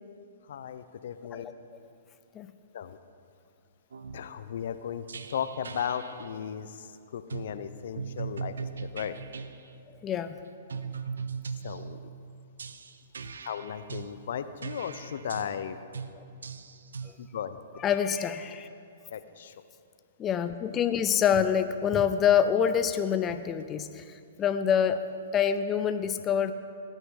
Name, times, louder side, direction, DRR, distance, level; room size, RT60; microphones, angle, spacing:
voice 1, 0.5-1.5 2.7-3.0 4.1-5.0 5.3-9.1 11.6-12.0 13.4-15.8 17.2-17.6 19.1-19.5, left 8 dB, 65° left, 12 dB, 0.7 m, -36 dB
sound 1, 3.9-4.3 5.1-6.3 7.3-7.6 8.0-9.6 10.7-12.0 12.6-14.1 14.6-15.5 15.9-16.1 16.4-17.2, right 5 dB, 80° right, 0.6 m, -39 dB
voice 2, 10.0-10.4 17.8-18.7 20.2-24.0 24.4-25.0 25.3-26.5, left 8 dB, 25° left, 10 dB, 0.5 m, -26 dB
20.0 x 10.0 x 3.8 m, 2.5 s
hypercardioid pair, 120°, 0 cm